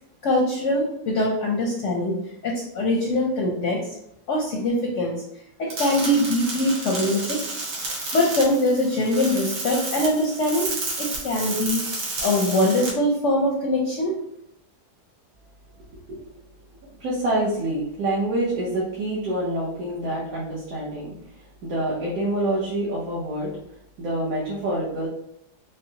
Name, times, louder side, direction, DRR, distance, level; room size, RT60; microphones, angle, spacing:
voice 1, 0.2-2.1 2.4-3.8 4.3-5.2 5.6-7.4 8.1-10.7 11.0-11.8 12.2-14.2, left 1 dB, 65° left, -1 dB, 0.8 m, -22 dB
sound 1, 5.7-12.9, right 2 dB, 80° right, 1.7 m, -31 dB
voice 2, 15.8-16.2 17.0-23.5 24.0-25.1, right 1 dB, 65° right, -6 dB, 1.3 m, -27 dB
5.5 x 2.0 x 2.7 m, 0.78 s
omnidirectional pair, 1.8 m